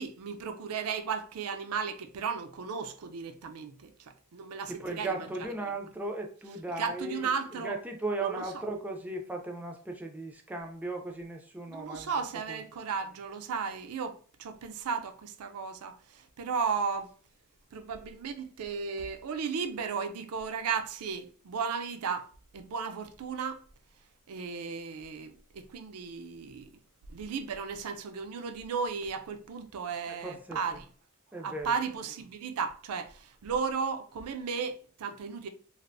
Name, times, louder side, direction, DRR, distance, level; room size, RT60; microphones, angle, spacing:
voice 1, 0.0-5.5 6.8-7.8 8.2-8.4 11.7-17.1 17.7-23.6 24.3-26.7 27.1-30.9 31.4-35.5, right 5 dB, 85° right, 0.4 m, -35 dB
voice 2, 4.7-12.1 12.5-12.6 30.1-30.8 31.3-31.7, right 2 dB, 5° right, 0.4 m, -37 dB
3.3 x 2.4 x 2.5 m
head